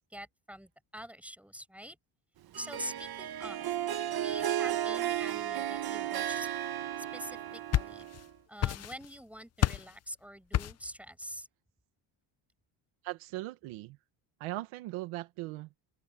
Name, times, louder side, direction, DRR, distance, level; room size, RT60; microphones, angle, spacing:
voice 1, 0.1-2.0 2.6-3.6 4.2-6.5 7.0-7.4 7.7-8.1 8.5-11.5, equal, 5° right, 5.9 m, -45 dB
Harp, 2.5-8.3, right 11 dB, 50° right, 1.5 m, -34 dB
sound 1, 7.3-8.3 8.6-9.2 9.6-10.0 10.5-10.9, left 12 dB, 35° left, 0.5 m, -30 dB
voice 2, 13.0-14.0 14.4-15.7, right 19 dB, 90° right, 1.4 m, -39 dB
cardioid pair, 125°, 48 cm